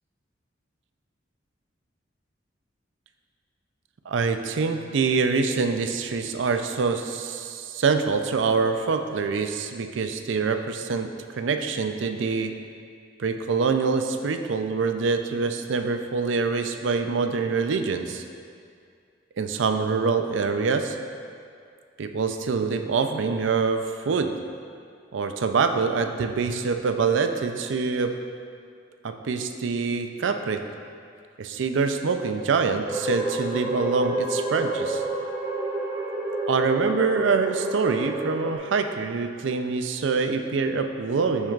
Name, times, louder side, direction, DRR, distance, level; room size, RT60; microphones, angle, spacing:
voice 1, 4.1-12.6 13.2-18.2 19.4-21.0 22.0-24.4 25.1-28.2 29.0-30.6 31.4-35.0 36.5-41.5, right 4 dB, 75° right, 7 dB, 0.4 m, -25 dB
sound 1, 32.9-38.6, right 2 dB, 15° right, 0.7 m, -29 dB
12.5 x 4.5 x 2.4 m, 2.3 s
head